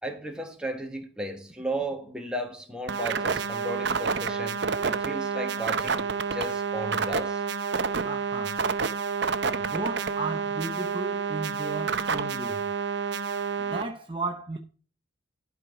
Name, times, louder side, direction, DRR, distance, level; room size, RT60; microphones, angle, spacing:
voice 1, 0.0-7.4, right 1 dB, 5° right, 1.4 m, -35 dB
sound 1, 2.9-13.8, right 5 dB, 55° right, 0.7 m, -29 dB
voice 2, 8.0-8.6 9.5-12.6 13.6-14.6, right 3 dB, 25° right, 0.8 m, -34 dB
12.0 x 4.8 x 5.8 m
head